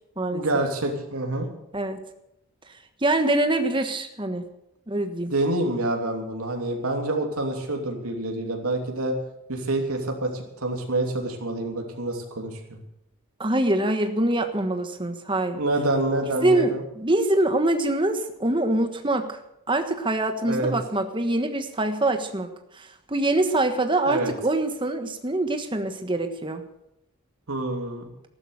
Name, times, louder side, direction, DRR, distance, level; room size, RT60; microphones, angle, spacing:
voice 1, 0.3-1.5 5.3-9.1 9.5-12.8 15.5-16.8 20.5-20.7 24.0-24.3 27.5-28.0, right 2 dB, 80° right, 2 dB, 2.9 m, -27 dB
voice 2, 3.0-4.4 4.9-5.3 13.4-15.6 16.4-19.4 19.7-26.6, right 2 dB, 20° right, 7 dB, 1.4 m, -24 dB
14.0 x 12.0 x 6.6 m, 0.84 s
head